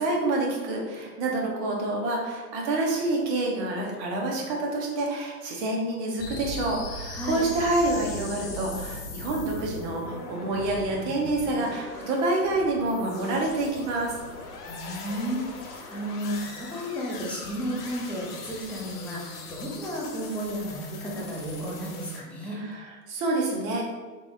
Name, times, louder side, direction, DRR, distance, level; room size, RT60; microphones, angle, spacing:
voice 1, 0.0-14.2 22.5-23.8, right 2 dB, 45° right, -1 dB, 1.2 m, -27 dB
sound 1, 6.2-22.2, left 3 dB, 80° left, 1.2 m, -40 dB
voice 2, 7.1-7.4 14.7-22.6, equal, 5° left, -5 dB, 0.4 m, -33 dB
3.9 x 3.8 x 2.6 m, 1.3 s
hypercardioid pair, 120°, 46 cm